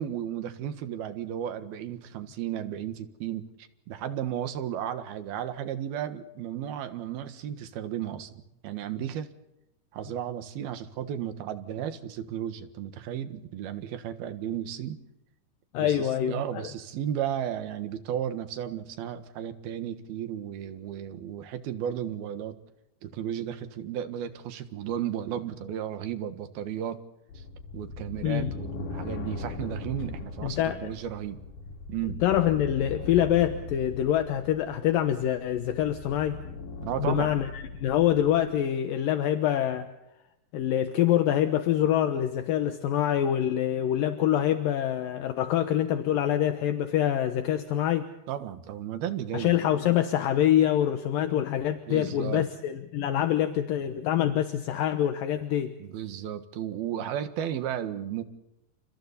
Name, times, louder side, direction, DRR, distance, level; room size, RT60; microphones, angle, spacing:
voice 1, 0.0-9.3 9.9-15.0 15.8-22.6 23.0-27.0 27.4-27.5 27.7-31.4 31.9-32.2 36.8-37.3 48.3-49.6 51.9-52.5 55.8-58.2, right 10 dB, 80° right, 10 dB, 3.4 m, -34 dB
voice 2, 15.7-16.7 28.2-28.5 30.4-30.8 32.2-36.4 37.0-39.9 40.5-48.1 49.3-55.8, left 11 dB, 70° left, 8 dB, 2.7 m, -25 dB
sound 1, 27.3-38.5, left 3 dB, 90° left, 5.3 m, -39 dB
29.5 x 29.5 x 4.2 m, 0.90 s
omnidirectional pair, 4.3 m